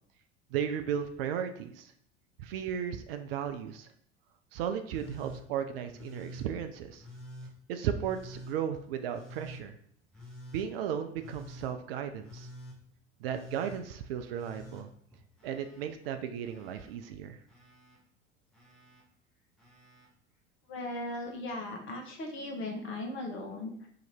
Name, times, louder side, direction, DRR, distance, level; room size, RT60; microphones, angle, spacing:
voice 1, 0.5-1.9 2.4-3.9 4.5-7.0 7.7-9.8 10.5-12.5 13.2-14.9 15.4-17.4, right 8 dB, 55° right, 7 dB, 0.4 m, -35 dB
Telephone, 4.9-5.4 5.9-6.5 7.0-7.5 8.0-8.6 9.1-9.6 10.1-10.7 11.2-11.7 12.2-12.8 13.3-13.8 14.3-15.9 16.2-16.9 17.5-18.0 18.5-19.0 19.6-20.1 21.3-21.4, equal, ahead, 1.0 m, -48 dB
voice 2, 20.7-23.9, left 2 dB, 35° left, 2 dB, 0.9 m, -38 dB
2.9 x 2.5 x 4.3 m, 0.64 s
figure-of-eight pair, 75°, 35 cm